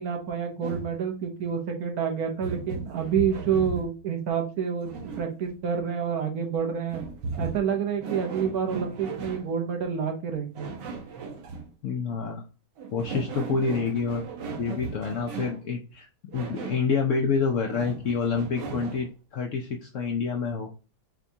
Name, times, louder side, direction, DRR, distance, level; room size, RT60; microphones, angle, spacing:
voice 1, 0.0-4.9 5.2-7.0 7.4-10.7, right 7 dB, 65° right, 4 dB, 1.3 m, -28 dB
sound 1, 0.6-1.0 2.4-4.0 4.8-5.5 6.9-9.5 10.6-11.7 12.8-15.7 16.3-16.9 17.7-19.1, right 4 dB, 85° right, 1.5 m, -36 dB
voice 2, 11.8-12.4 12.9-14.2 14.6-16.1 16.3-20.7, left 5 dB, 70° left, 3 dB, 0.7 m, -28 dB
6.0 x 2.3 x 2.7 m, 0.33 s
omnidirectional pair, 1.8 m